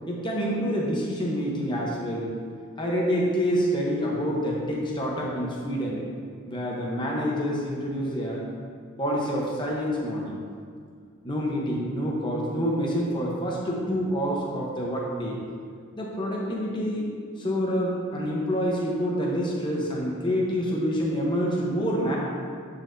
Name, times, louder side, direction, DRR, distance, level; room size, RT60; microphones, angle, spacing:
voice 1, 0.1-2.3 2.8-6.1 6.5-8.4 9.0-10.4 11.2-15.4 16.0-17.1 17.4-22.2, equal, 20° left, -3 dB, 0.9 m, -27 dB
9.4 x 4.2 x 2.6 m, 2.1 s
head